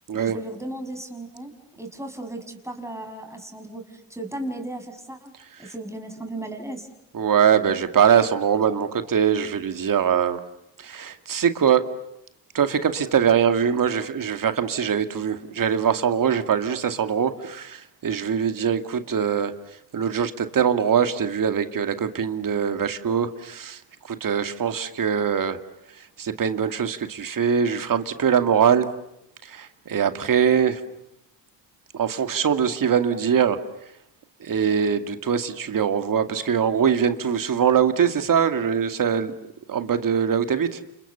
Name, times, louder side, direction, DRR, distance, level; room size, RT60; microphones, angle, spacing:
voice 1, 0.1-1.5 1.8-5.3 5.6-6.9, right 1 dB, 5° right, 5 dB, 6.5 m, -35 dB
voice 2, 7.1-10.4 10.8-11.8 12.5-19.5 19.9-23.8 24.1-25.6 26.2-28.9 29.4-30.8 31.9-33.6 34.4-39.3 39.7-40.8, right 7 dB, 45° right, 8 dB, 2.3 m, -22 dB
30.0 x 28.5 x 7.0 m, 0.82 s
supercardioid pair, 65°, 44 cm